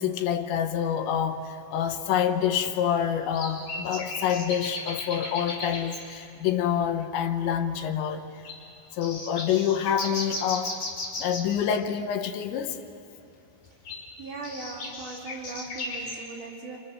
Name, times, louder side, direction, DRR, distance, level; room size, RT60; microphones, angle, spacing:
voice 1, 0.0-8.2 8.9-10.8 11.2-12.8, left 9 dB, 80° left, 3.3 m, -27 dB
sound 1, 1.1-1.2 1.9-2.0 3.3-6.1 6.7-6.8 7.1-7.2 7.5-7.9 8.4-8.6 9.0-11.6 13.7-16.2, left 2 dB, 45° left, 7.2 m, -36 dB
voice 2, 14.2-16.8, right 3 dB, 45° right, 4.4 m, -39 dB
28.5 x 28.5 x 6.7 m
omnidirectional pair, 5.2 m